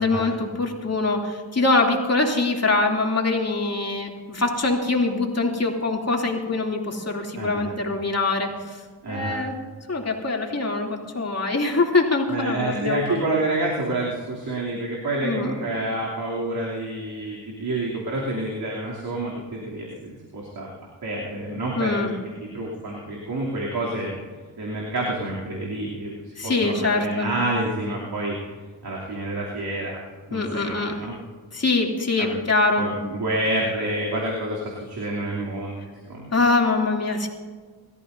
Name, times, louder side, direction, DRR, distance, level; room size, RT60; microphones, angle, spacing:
voice 1, 0.0-8.8 9.1-9.5 9.9-13.2 15.2-15.5 21.7-22.1 26.4-27.3 30.3-31.0 31.5-32.8 36.3-37.3, left 3 dB, 35° left, 0 dB, 2.9 m, -23 dB
voice 2, 7.3-7.7 9.0-9.4 12.3-20.7 21.0-22.1 22.5-24.1 24.6-28.4 28.8-30.0 30.3-31.1 32.2-32.4 32.8-36.3, right 2 dB, 60° right, -4 dB, 3.1 m, -28 dB
27.5 x 14.0 x 2.7 m, 1.5 s
cardioid pair, 70°, 42 cm